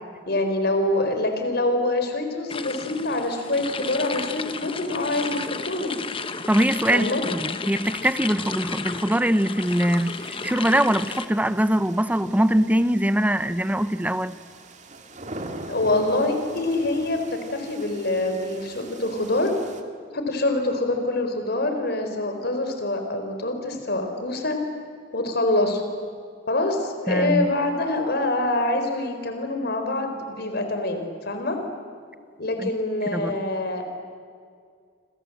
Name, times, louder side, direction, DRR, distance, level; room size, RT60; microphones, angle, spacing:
voice 1, 0.3-6.0 6.9-7.2 15.7-19.5 20.1-24.6 25.1-25.8 26.5-31.6 32.4-33.8, left 2 dB, 60° left, 4.1 m, -25 dB
sound 1, 2.5-11.3, left 5 dB, 30° left, 1.1 m, -33 dB
voice 2, 6.5-14.4 27.1-27.5 32.6-32.7 33.1-33.4, right 1 dB, 10° right, 0.8 m, -22 dB
sound 2, 9.6-19.8, right 2 dB, 40° right, 2.3 m, -42 dB
29.0 x 26.0 x 7.8 m
head